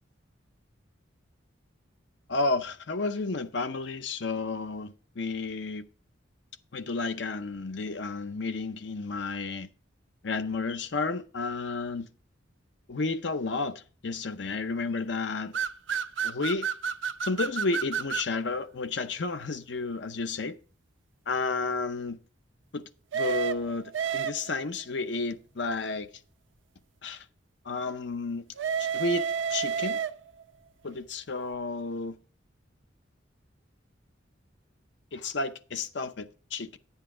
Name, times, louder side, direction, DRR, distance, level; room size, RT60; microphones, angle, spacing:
voice 1, 2.3-5.8 6.7-9.7 10.2-12.1 12.9-15.6 16.2-16.7 17.2-20.5 21.3-22.2 22.7-22.8 23.1-26.1 27.0-27.2 27.6-28.4 28.8-30.0 30.8-32.2 35.1-36.8, left 3 dB, 65° left, 0.7 m, -32 dB
sound 1, 15.5-18.3 23.1-24.7 28.6-30.4, right 7 dB, 75° right, 0.6 m, -30 dB
9.9 x 8.1 x 3.7 m
head